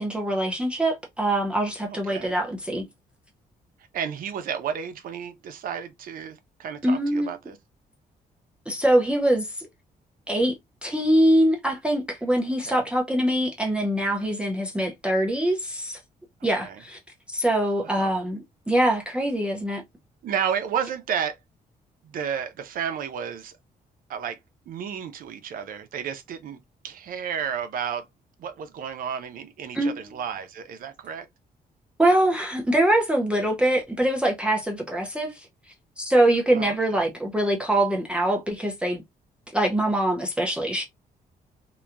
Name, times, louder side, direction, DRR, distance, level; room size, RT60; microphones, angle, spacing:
voice 1, 0.0-2.8 6.8-7.3 8.7-9.7 10.3-10.6 10.8-16.0 16.4-17.0 17.3-19.8 29.7-30.0 32.0-35.5 36.0-39.0 39.5-40.8, right 1 dB, 5° right, 0.5 m, -23 dB
voice 2, 1.9-2.3 3.9-7.6 12.6-12.8 16.6-16.8 17.8-18.2 20.2-21.4 22.0-23.6 24.1-24.4 24.7-28.0 28.4-31.3 36.5-37.1, right 8 dB, 70° right, 0.6 m, -32 dB
2.9 x 2.2 x 2.4 m
cardioid pair, 135°, 15 cm